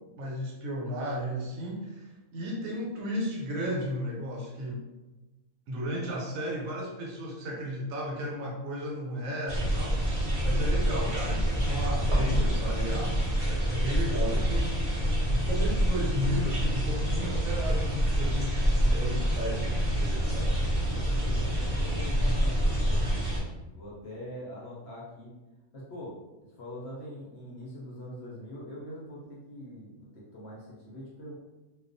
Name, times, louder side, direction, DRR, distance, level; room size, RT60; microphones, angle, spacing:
voice 1, 0.2-4.8 5.7-15.0 15.3-20.5, equal, 80° right, -2 dB, 1.0 m, -34 dB
sound 1, 9.5-23.4, equal, 50° right, 0.4 m, -27 dB
voice 2, 14.2-14.5 20.9-23.1 23.7-25.3 25.7-26.3 26.6-31.4, equal, 60° left, -5 dB, 0.7 m, -43 dB
2.3 x 2.3 x 2.5 m, 1.1 s
omnidirectional pair, 1.5 m